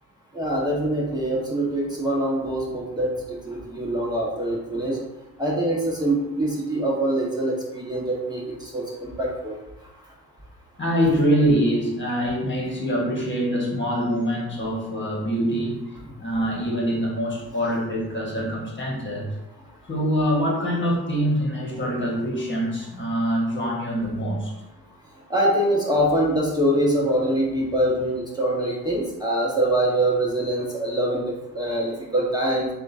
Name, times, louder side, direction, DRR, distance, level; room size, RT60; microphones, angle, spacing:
voice 1, 0.3-5.0 5.4-9.5 25.3-31.2 31.5-32.7, right 1 dB, 10° right, -4 dB, 1.2 m, -24 dB
voice 2, 10.8-15.9 16.2-19.3 19.9-24.5, equal, 30° left, -2 dB, 1.4 m, -24 dB
7.4 x 2.5 x 2.7 m, 0.93 s
cardioid pair, 75°, 36 cm